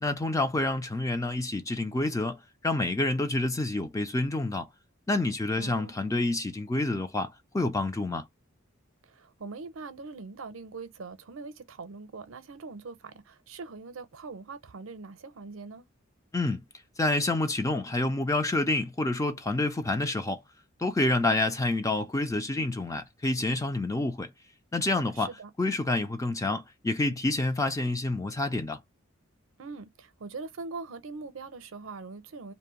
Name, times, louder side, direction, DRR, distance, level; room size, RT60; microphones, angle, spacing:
voice 1, 0.0-4.7 5.1-8.2 16.3-16.6 17.0-20.4 20.8-24.3 24.7-25.3 25.6-28.8, left 2 dB, 15° left, 0.4 m, -28 dB
voice 2, 5.6-5.9 9.1-15.9 25.2-25.5 29.6-32.5, right 4 dB, 75° right, 0.6 m, -42 dB
2.7 x 2.1 x 2.9 m
head